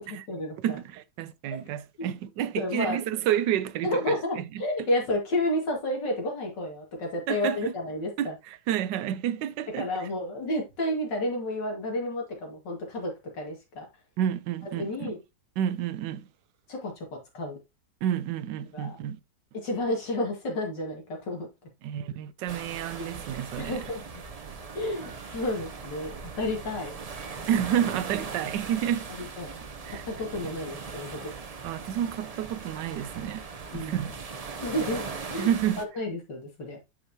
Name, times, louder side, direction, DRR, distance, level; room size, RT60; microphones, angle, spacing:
voice 1, 0.0-0.6 2.0-2.1 2.6-3.0 3.8-8.3 9.8-13.9 14.8-15.2 16.7-17.0 17.3-17.6 18.7-19.0 19.6-21.5 23.0-23.1 23.6-24.0 24.7-26.1 26.4-26.9 29.2-29.6 30.1-31.3 33.7-34.0 34.6-35.0 35.3-35.5 35.8-36.8, left 1 dB, 80° left, 2.8 m, -31 dB
voice 2, 0.6-4.4 7.3-7.7 8.2-10.1 14.2-15.1 15.6-16.3 18.0-19.2 21.8-23.8 27.5-29.1 29.8-30.1 30.4-30.5 31.6-33.4 33.7-34.1 35.4-35.8, right 10 dB, 80° right, 1.3 m, -30 dB
sound 1, 22.5-35.8, right 5 dB, 65° right, 0.3 m, -39 dB
8.5 x 5.4 x 2.8 m
omnidirectional pair, 1.9 m